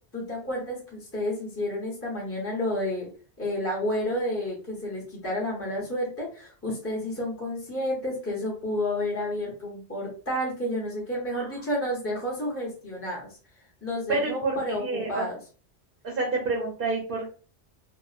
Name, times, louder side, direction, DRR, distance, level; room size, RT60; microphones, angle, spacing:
voice 1, 0.1-3.1 3.4-13.4 13.8-15.4, left 1 dB, 15° left, -4 dB, 0.8 m, -30 dB
voice 2, 14.1-15.2 16.0-17.3, right 3 dB, 60° right, -1 dB, 0.9 m, -28 dB
2.8 x 2.2 x 2.4 m, 0.38 s
omnidirectional pair, 1.1 m